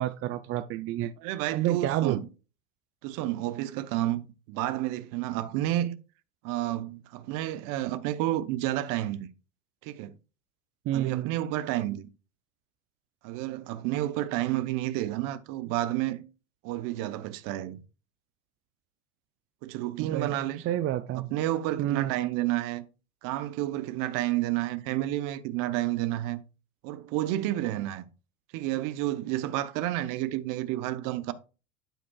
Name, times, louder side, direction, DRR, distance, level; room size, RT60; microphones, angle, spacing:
voice 1, 0.0-1.1 1.5-2.2 10.9-11.3 20.0-20.3 20.6-21.3 21.8-22.1, right 13 dB, 35° right, 0.5 m, -29 dB
voice 2, 1.2-2.3 3.0-6.0 6.4-9.3 9.8-10.2 10.9-12.1 13.2-16.2 16.6-17.8 19.6-20.6 21.1-22.8 23.2-26.4 26.8-28.0 28.5-31.3, right 14 dB, 55° right, 0.9 m, -30 dB
12.0 x 5.1 x 2.4 m
hypercardioid pair, 95°, 38 cm